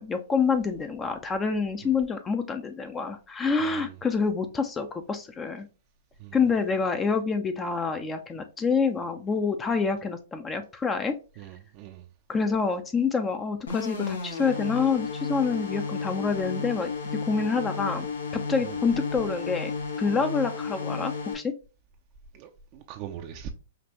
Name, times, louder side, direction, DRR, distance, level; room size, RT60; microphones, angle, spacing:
voice 1, 0.0-5.7 6.3-11.2 12.3-16.9 17.2-18.1 18.3-19.7 20.0-21.5, left 5 dB, 20° left, 0.5 m, -27 dB
voice 2, 3.6-3.9 6.2-6.4 11.4-12.1 18.6-18.8 22.3-23.5, right 9 dB, 45° right, 0.5 m, -41 dB
sound 1, 13.7-21.3, left 4 dB, 80° left, 1.2 m, -33 dB
5.1 x 2.5 x 2.9 m
hypercardioid pair, 120°, 0 cm